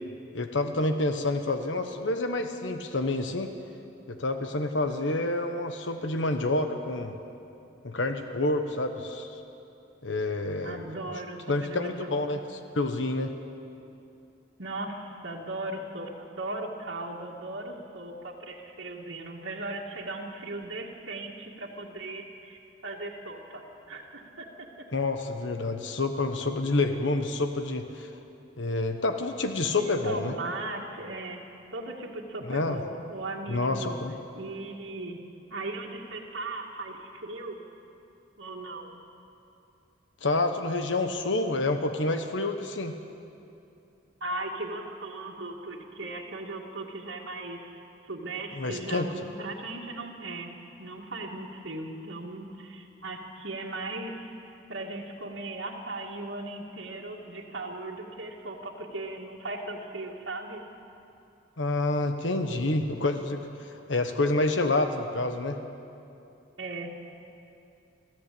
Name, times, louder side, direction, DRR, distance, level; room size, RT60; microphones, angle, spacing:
voice 1, 0.3-3.5 4.1-7.1 7.8-9.3 10.0-10.9 11.5-12.4 12.7-13.3 24.9-28.1 28.6-30.3 32.5-32.8 33.5-34.1 40.2-42.9 48.5-49.1 61.6-65.6, left 2 dB, 85° left, 6 dB, 1.3 m, -28 dB
voice 2, 10.6-12.4 14.6-24.9 29.7-31.4 31.7-34.0 34.4-35.2 35.5-37.6 38.4-39.0 44.2-50.5 50.8-54.3 54.7-60.6 66.6-66.9, right 2 dB, 90° right, -3 dB, 2.2 m, -38 dB
24.5 x 15.5 x 8.6 m, 2.7 s
head